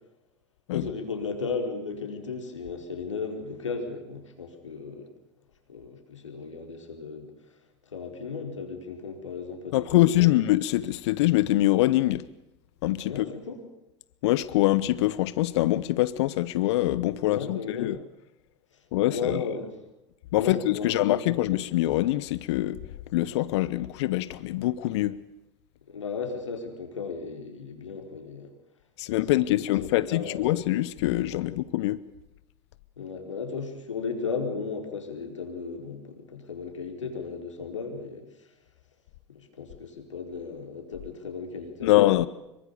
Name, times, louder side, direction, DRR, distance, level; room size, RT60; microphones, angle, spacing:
voice 1, 0.7-5.1 5.7-7.3 7.9-10.4 13.0-13.6 17.2-17.9 18.9-19.7 20.4-21.4 25.9-28.5 29.2-30.6 31.3-31.5 33.0-38.2 39.3-42.0, left 5 dB, 90° left, 4.7 m, -35 dB
voice 2, 9.7-12.3 12.8-13.2 14.2-18.0 18.9-19.4 20.3-25.2 29.0-32.0 41.8-42.3, left 16 dB, 65° left, 1.0 m, -24 dB
25.5 x 23.5 x 6.9 m
hypercardioid pair, 85°, 15 cm